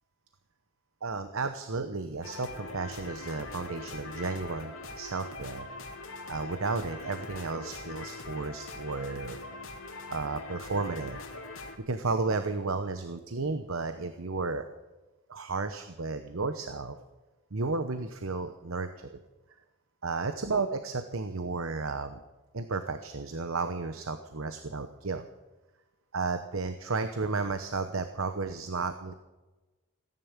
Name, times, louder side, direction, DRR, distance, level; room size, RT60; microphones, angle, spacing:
voice 1, 1.0-5.7 6.3-9.4 10.1-11.2 11.5-14.6 15.3-17.0 17.5-19.2 20.0-22.2 22.5-25.2 26.1-29.1, right 3 dB, 90° right, 9 dB, 1.0 m, -33 dB
sound 1, 2.2-11.8, left 3 dB, 80° left, 2.6 m, -42 dB
17.0 x 11.0 x 7.4 m, 1.1 s
head